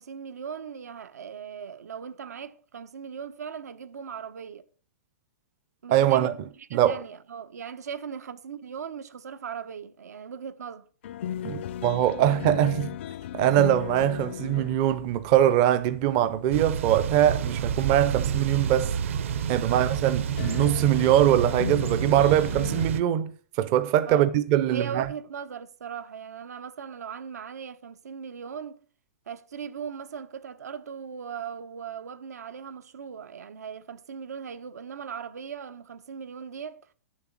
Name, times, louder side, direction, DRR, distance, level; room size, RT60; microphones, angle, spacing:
voice 1, 0.0-4.7 5.8-10.9 24.1-24.3 24.7-28.8 29.3-36.9, right 7 dB, 85° right, 1.1 m, -39 dB
voice 2, 5.9-6.3 6.7-7.0 11.4-12.9 13.3-19.0 19.5-25.1, right 11 dB, 25° right, 0.5 m, -22 dB
sound 1, 11.0-22.9, left 10 dB, 45° left, 0.4 m, -38 dB
Thunder / Bicycle, 16.5-23.0, right 8 dB, 55° right, 0.9 m, -29 dB
9.8 x 7.2 x 6.0 m
hypercardioid pair, 170°, 8 cm